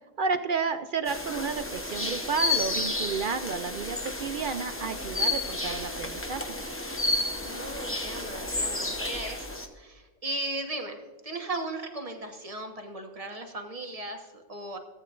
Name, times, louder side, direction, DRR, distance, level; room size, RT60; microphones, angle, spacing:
voice 1, 0.2-6.4, right 5 dB, 60° right, 9 dB, 0.6 m, -31 dB
sound 1, 1.1-9.7, left 2 dB, 10° left, 0.8 m, -31 dB
voice 2, 7.4-14.8, right 2 dB, 30° right, 4 dB, 1.3 m, -37 dB
17.0 x 8.7 x 2.5 m, 1.4 s
omnidirectional pair, 1.3 m